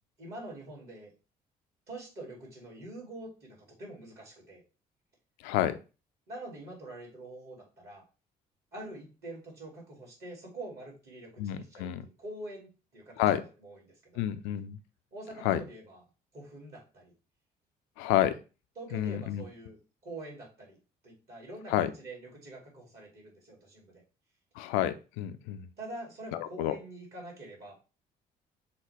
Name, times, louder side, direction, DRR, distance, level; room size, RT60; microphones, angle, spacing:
voice 1, 0.2-1.1 1.9-4.6 6.3-8.0 8.7-14.2 15.1-16.0 16.3-17.1 18.8-19.8 20.0-20.8 21.0-24.0 25.8-27.8, right 1 dB, 50° right, -2 dB, 2.7 m, -45 dB
voice 2, 5.4-5.8 11.4-12.0 13.2-13.4 14.2-14.8 15.4-15.6 18.0-18.4 18.9-19.4 21.7-21.9 24.6-25.7 26.3-26.8, left 12 dB, 70° left, 11 dB, 0.5 m, -29 dB
6.7 x 2.3 x 3.3 m, 0.33 s
hypercardioid pair, 50°, 20 cm